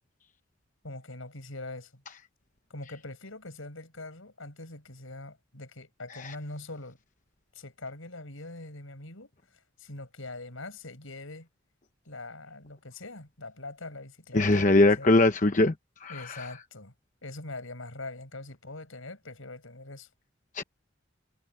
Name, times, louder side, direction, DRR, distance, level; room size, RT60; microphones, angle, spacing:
voice 1, 0.8-2.0 2.7-7.0 7.5-9.3 9.8-11.5 12.0-15.2 16.1-16.9 17.2-20.1, left 2 dB, 85° left, 5.9 m, -42 dB
voice 2, 14.3-15.7 16.0-16.5 20.5-20.6, left 2 dB, 40° left, 1.0 m, -22 dB
head